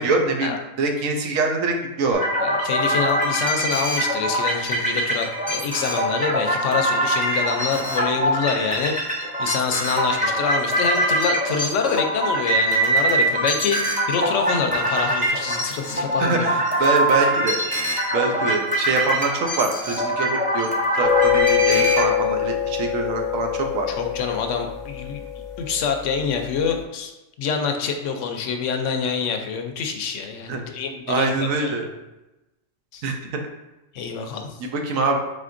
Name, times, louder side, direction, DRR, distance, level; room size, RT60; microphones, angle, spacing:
voice 1, 0.0-2.2 16.2-17.6 18.1-20.7 20.9-23.9 30.5-30.6 31.1-31.9 33.0-33.1 34.7-35.2, right 3 dB, 85° right, 3 dB, 1.1 m, -24 dB
sound 1, 2.1-22.0, right 1 dB, 10° right, 0.7 m, -23 dB
voice 2, 2.4-9.1 9.4-16.5 16.8-16.9 23.9-25.2 25.6-27.1 27.4-31.8 32.9-33.1 33.9-34.6, left 6 dB, 75° left, 4 dB, 0.9 m, -26 dB
sound 2, 21.0-26.5, left 10 dB, 50° left, 0.6 m, -24 dB
4.2 x 3.9 x 2.5 m, 1.0 s
omnidirectional pair, 1.4 m